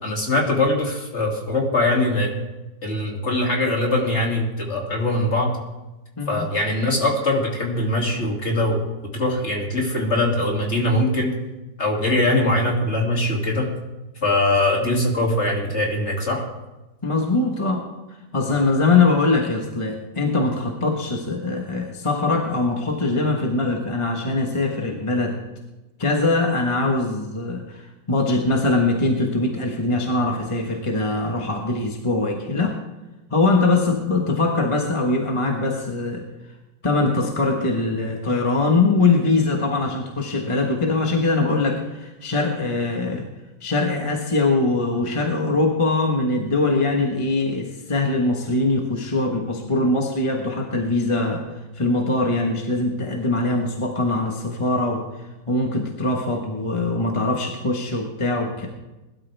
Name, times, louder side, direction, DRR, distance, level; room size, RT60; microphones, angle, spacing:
voice 1, 0.0-2.3 2.8-5.5 6.3-8.8 9.1-11.3 11.8-13.7 14.2-16.4, left 1 dB, 40° left, 0 dB, 2.9 m, -22 dB
voice 2, 17.0-17.9 18.3-25.4 26.0-32.8 33.3-36.2 36.8-43.3 43.6-51.5 51.7-55.0 55.5-58.7, left 3 dB, 20° left, 1 dB, 1.3 m, -22 dB
20.5 x 12.5 x 3.5 m, 1.1 s
omnidirectional pair, 1.9 m